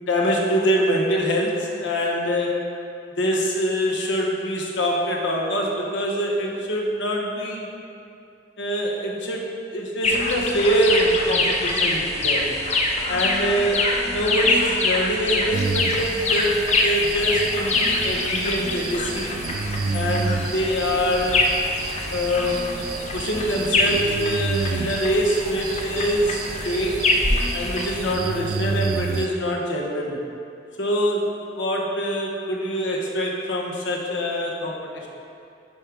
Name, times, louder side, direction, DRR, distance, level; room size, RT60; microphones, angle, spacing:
voice 1, 0.0-2.6 3.2-7.7 8.6-9.4 9.7-12.5 13.1-19.4 19.9-21.4 22.1-22.7 23.1-27.0 27.5-30.2 30.8-35.1, equal, 75° left, -1 dB, 1.1 m, -24 dB
sound 1, 10.0-28.2, left 2 dB, 35° left, 0.6 m, -25 dB
sound 2, 15.5-29.3, right 4 dB, 50° right, 0.3 m, -31 dB
10.5 x 5.0 x 3.5 m, 2.6 s
head